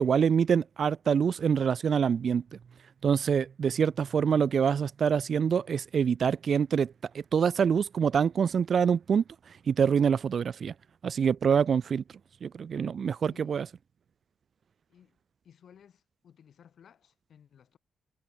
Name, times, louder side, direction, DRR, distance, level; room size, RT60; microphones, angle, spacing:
voice 1, 0.0-2.4 3.0-9.2 9.7-10.7 11.0-12.0 12.4-13.7, right 7 dB, 45° right, 0.3 m, -25 dB
voice 2, 13.3-13.7 14.9-15.2 15.4-17.8, left 8 dB, 55° left, 7.0 m, -57 dB
wide cardioid pair, 145°, 0 cm